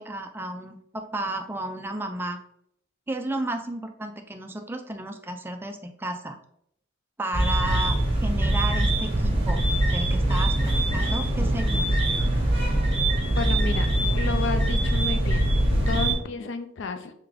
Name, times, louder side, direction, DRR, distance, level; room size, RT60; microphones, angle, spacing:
voice 1, 0.0-2.4 3.1-6.4 7.2-9.6 9.9-11.8, right 1 dB, 10° right, 5 dB, 0.3 m, -33 dB
sound 1, 7.3-16.1, right 1 dB, 30° right, 1.2 m, -23 dB
voice 2, 13.3-13.9 14.1-15.4 15.9-17.1, left 4 dB, 65° left, 9 dB, 0.4 m, -31 dB
3.7 x 3.4 x 3.4 m, 0.72 s
head